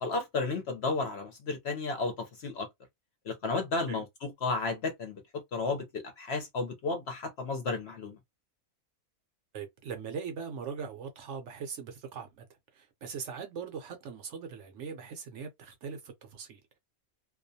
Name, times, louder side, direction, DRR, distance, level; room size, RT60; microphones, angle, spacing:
voice 1, 0.0-2.7 3.3-5.2 5.5-8.2, left 3 dB, 60° left, 0.8 m, -33 dB
voice 2, 9.5-12.4 12.7-16.8, right 6 dB, 65° right, 0.8 m, -40 dB
2.4 x 2.2 x 2.6 m
omnidirectional pair, 1.5 m